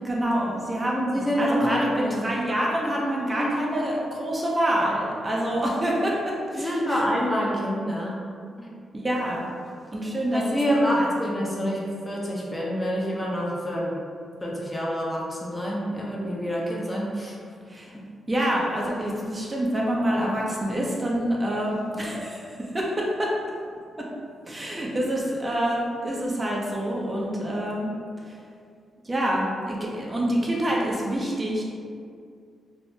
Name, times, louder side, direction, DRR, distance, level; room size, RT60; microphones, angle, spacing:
voice 1, 0.0-7.0 8.9-9.4 9.9-10.4 10.7-11.1 11.4-11.6 17.7-17.9 18.3-23.3 24.5-27.9 28.3-28.4 29.0-31.6, right 1 dB, 30° right, -3 dB, 0.6 m, -27 dB
voice 2, 0.9-2.3 3.4-3.6 6.6-8.2 8.6-8.7 10.3-13.9 14.4-17.4, equal, 20° left, -3 dB, 0.6 m, -27 dB
3.3 x 2.1 x 2.7 m, 2.3 s
cardioid pair, 65°, 0 cm